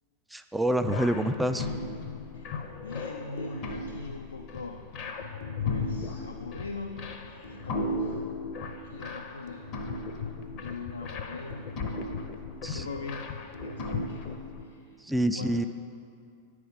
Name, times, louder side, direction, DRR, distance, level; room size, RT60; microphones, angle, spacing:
voice 1, 0.3-1.7 12.6-12.9 15.0-15.7, right 1 dB, 5° right, 8 dB, 0.3 m, -27 dB
sound 1, 0.8-14.6, left 3 dB, 40° left, 0.8 m, -36 dB
voice 2, 2.3-4.9 5.6-8.2 8.6-9.7 9.9-10.2 10.5-12.2 12.7-13.3 13.6-15.0 15.3-15.7, left 3 dB, 75° left, 4 dB, 0.5 m, -42 dB
9.8 x 4.8 x 7.0 m, 2.4 s
figure-of-eight pair, 90°, 0 cm